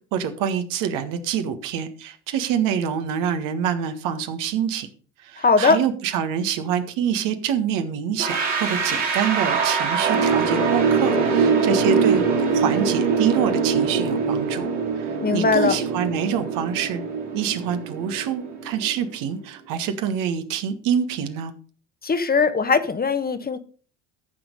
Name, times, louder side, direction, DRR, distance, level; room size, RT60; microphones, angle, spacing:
voice 1, 0.1-4.9 5.2-12.2 12.5-14.7 14.9-17.0 17.3-21.5, right 8 dB, 65° right, 1.6 m, -26 dB
voice 2, 5.4-5.8 15.2-15.8 22.0-23.6, left 4 dB, 25° left, 1.3 m, -20 dB
sound 1, 8.2-19.1, right 5 dB, 85° right, 2.9 m, -23 dB
14.0 x 6.2 x 5.2 m
hypercardioid pair, 60°, 35 cm